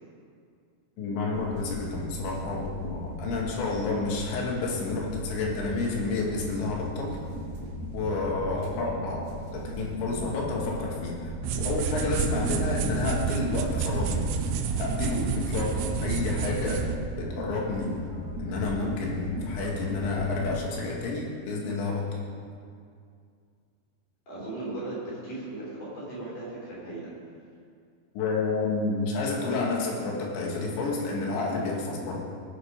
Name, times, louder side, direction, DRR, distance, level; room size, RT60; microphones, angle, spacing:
voice 1, 1.0-7.2 7.9-9.2 9.5-14.2 14.8-16.9 17.2-18.0 18.4-22.2 28.2-32.2, left 3 dB, 90° left, -2 dB, 4.1 m, -30 dB
sound 1, 1.3-20.7, equal, 65° right, 3.8 m, -38 dB
sound 2, 11.4-16.9, right 6 dB, 85° right, 2.8 m, -29 dB
voice 2, 24.3-27.1, right 2 dB, 50° left, -6 dB, 5.1 m, -37 dB
19.5 x 7.0 x 5.2 m, 2.3 s
omnidirectional pair, 5.0 m